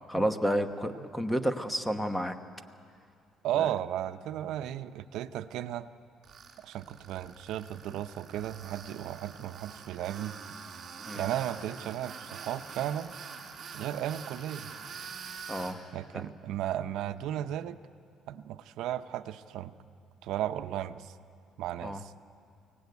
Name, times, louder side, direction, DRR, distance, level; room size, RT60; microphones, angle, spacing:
voice 1, 0.1-2.4 3.6-3.7 11.1-11.3 15.5-15.8 16.1-16.2 21.8-22.0, equal, 5° left, 8 dB, 1.1 m, -30 dB
voice 2, 3.4-5.9 6.6-10.3 11.1-13.1 13.7-14.7 15.9-17.8 18.3-19.7 20.2-21.1 21.6-22.1, right 11 dB, 75° right, 11 dB, 0.7 m, -35 dB
Tools, 6.2-15.7, right 6 dB, 45° right, 3.3 m, -45 dB
23.5 x 18.0 x 9.5 m, 2.4 s
cardioid pair, 140°, 0 cm